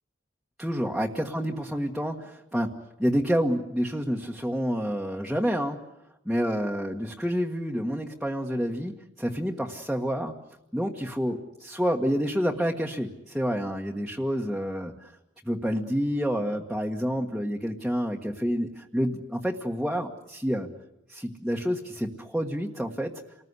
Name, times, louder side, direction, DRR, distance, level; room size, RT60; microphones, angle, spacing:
voice 1, 0.6-2.7 3.0-5.8 6.2-10.3 10.7-14.9 15.4-20.7 21.1-23.1, equal, ahead, -1 dB, 1.6 m, -28 dB
29.0 x 20.5 x 9.7 m, 0.91 s
head